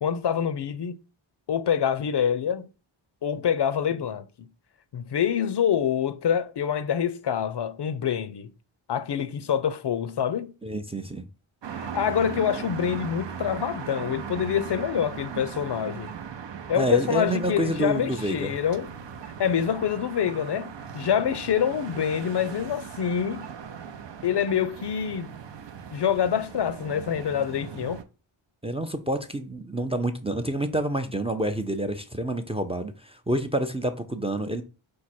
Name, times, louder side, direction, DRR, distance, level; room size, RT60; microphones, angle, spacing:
voice 1, 0.0-1.0 1.5-2.7 3.2-4.3 4.9-8.5 8.9-10.5 11.7-16.1 16.7-18.9 19.4-23.5 24.2-25.3 25.9-28.0, left 8 dB, 55° left, 0.5 m, -26 dB
voice 2, 10.6-11.3 16.8-18.6 28.6-34.6, right 1 dB, 15° right, 0.4 m, -28 dB
sound 1, 11.6-28.0, right 7 dB, 60° right, 0.6 m, -38 dB
4.7 x 2.2 x 4.2 m
cardioid pair, 50°, 49 cm